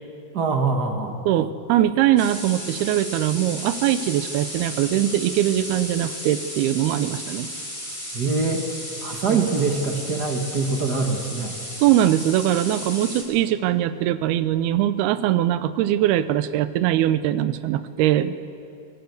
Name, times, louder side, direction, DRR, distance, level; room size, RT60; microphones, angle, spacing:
voice 1, 0.3-1.2 8.1-8.7 9.0-11.5, right 4 dB, 50° right, 3 dB, 1.1 m, -24 dB
voice 2, 1.3-7.5 9.3-9.4 11.8-18.3, right 12 dB, 85° right, 13 dB, 2.7 m, -21 dB
sound 1, 2.2-13.2, left 1 dB, 5° left, 3.9 m, -34 dB
23.5 x 19.5 x 8.1 m, 2.7 s
omnidirectional pair, 4.4 m